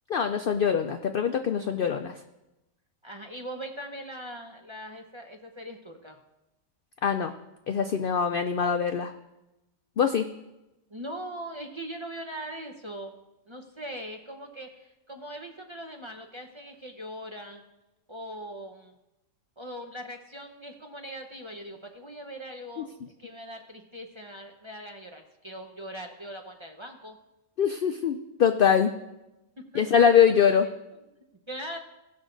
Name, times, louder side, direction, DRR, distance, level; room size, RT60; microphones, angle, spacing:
voice 1, 0.1-2.2 7.0-7.3 7.7-9.1 10.0-10.3 22.8-22.9 27.6-28.9 29.7-30.7, left 7 dB, 65° left, 7 dB, 0.5 m, -23 dB
voice 2, 3.0-6.2 10.9-13.1 13.5-17.6 18.1-19.0 19.6-22.9 23.2-27.2 29.6-30.4 31.5-31.8, equal, 25° right, 3 dB, 0.7 m, -40 dB
17.5 x 6.1 x 3.9 m, 0.95 s
omnidirectional pair, 1.5 m